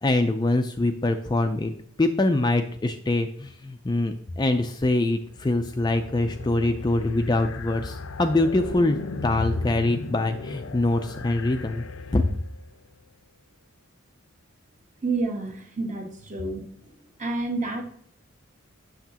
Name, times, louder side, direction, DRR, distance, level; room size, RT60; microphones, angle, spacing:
voice 1, 0.0-1.7 2.0-11.8 12.1-12.3, left 2 dB, 20° left, 7 dB, 0.4 m, -24 dB
sound 1, 5.3-12.7, left 3 dB, 75° left, 0.6 m, -35 dB
voice 2, 15.0-16.6 17.2-17.8, right 3 dB, 35° right, 3 dB, 1.2 m, -29 dB
8.1 x 6.4 x 2.9 m, 0.64 s
head